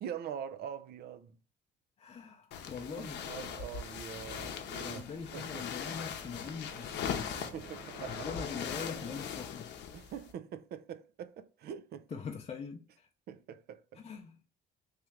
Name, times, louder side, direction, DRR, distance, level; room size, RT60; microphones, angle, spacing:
voice 1, 0.0-1.4 2.8-5.0 5.3-5.6 7.4-8.3 9.9-12.1 13.3-14.0, right 8 dB, 60° right, 0.5 m, -44 dB
voice 2, 2.0-3.2 4.8-7.5 8.1-9.8 12.1-13.1 13.9-14.4, left 6 dB, 30° left, 0.6 m, -43 dB
sound 1, 2.5-10.3, left 7 dB, 70° left, 0.7 m, -40 dB
sound 2, 4.1-9.2, right 3 dB, 80° right, 1.0 m, -52 dB
3.3 x 2.9 x 3.5 m
cardioid pair, 105°, 19 cm